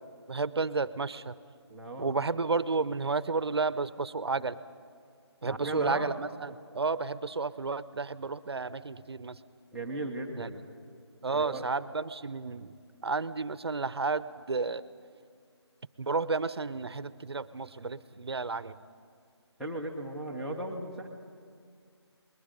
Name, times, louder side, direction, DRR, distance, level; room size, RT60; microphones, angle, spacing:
voice 1, 0.3-1.4 2.0-4.6 5.4-9.4 10.4-10.5 11.2-12.7 13.0-14.8 16.0-18.8, right 4 dB, 60° right, 16 dB, 0.8 m, -32 dB
voice 2, 1.7-2.2 5.4-6.2 9.7-10.6 11.3-11.6 19.6-21.1, right 1 dB, ahead, -7 dB, 0.7 m, -36 dB
29.0 x 21.0 x 5.2 m, 2.2 s
figure-of-eight pair, 165°, 15 cm